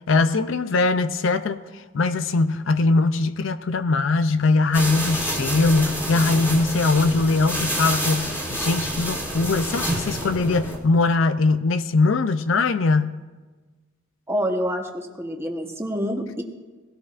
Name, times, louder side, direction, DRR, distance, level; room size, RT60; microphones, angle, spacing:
voice 1, 0.1-13.1, left 3 dB, 65° left, 12 dB, 0.5 m, -21 dB
sound 1, 4.7-10.8, right 1 dB, 15° left, 2.7 m, -28 dB
voice 2, 14.3-16.4, equal, 10° right, 2 dB, 1.1 m, -27 dB
19.0 x 17.0 x 2.5 m, 1.3 s
head